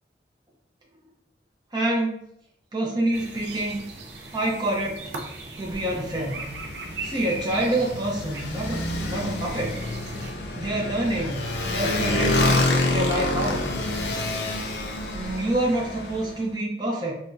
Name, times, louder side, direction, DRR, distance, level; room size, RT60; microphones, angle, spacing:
voice 1, 1.7-2.3 2.7-3.8 4.3-5.1 5.6-6.4 7.0-9.8 10.5-12.6 12.9-13.7 15.1-17.2, right 1 dB, 25° right, -3 dB, 0.6 m, -27 dB
sound 1, 3.1-10.3, right 2 dB, 75° right, 0.5 m, -39 dB
Motorcycle, 5.7-16.4, left 2 dB, 75° left, 0.4 m, -28 dB
3.3 x 2.3 x 2.6 m, 0.78 s
head